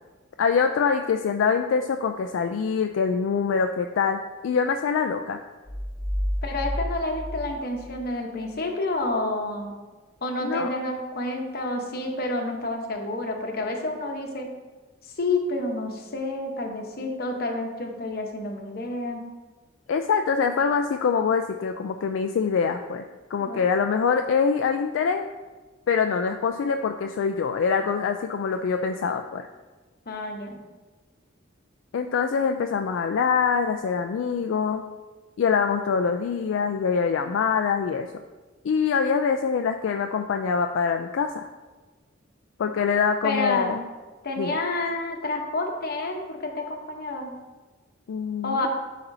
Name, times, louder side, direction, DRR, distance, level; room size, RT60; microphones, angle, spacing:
voice 1, 0.4-5.4 10.4-10.7 19.9-25.3 25.9-29.5 31.9-34.8 35.4-38.1 38.6-41.5 42.6-43.8 44.4-44.6 48.1-48.7, left 6 dB, 75° left, 5 dB, 0.3 m, -24 dB
sound 1, 5.6-8.6, equal, 5° left, 1.1 m, -31 dB
voice 2, 6.4-9.7 10.2-14.5 15.2-19.3 23.4-23.6 30.1-30.6 43.2-43.8 44.2-47.3 48.4-48.7, left 2 dB, 50° left, 2 dB, 0.9 m, -29 dB
11.0 x 4.2 x 2.7 m, 1.3 s
head